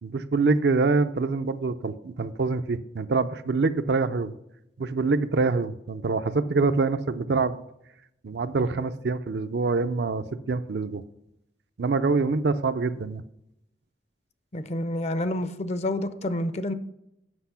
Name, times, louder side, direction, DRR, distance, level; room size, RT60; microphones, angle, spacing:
voice 1, 0.0-4.3 4.8-7.6 8.2-11.0 11.8-13.2, right 4 dB, 65° right, 11 dB, 0.5 m, -25 dB
voice 2, 14.5-16.7, left 1 dB, 35° left, 12 dB, 0.5 m, -28 dB
8.1 x 6.1 x 5.7 m, 0.82 s
head